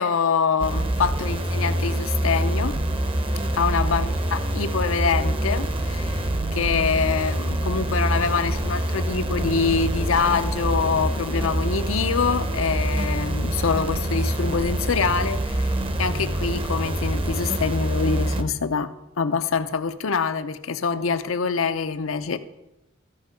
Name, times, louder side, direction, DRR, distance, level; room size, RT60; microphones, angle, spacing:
voice 1, 0.0-2.8 3.5-6.3 6.5-15.7 16.0-18.9 19.2-22.4, left 5 dB, 90° left, 0.7 m, -25 dB
sound 1, 0.6-18.4, right 1 dB, 25° right, 0.7 m, -25 dB
14.5 x 5.5 x 5.1 m
head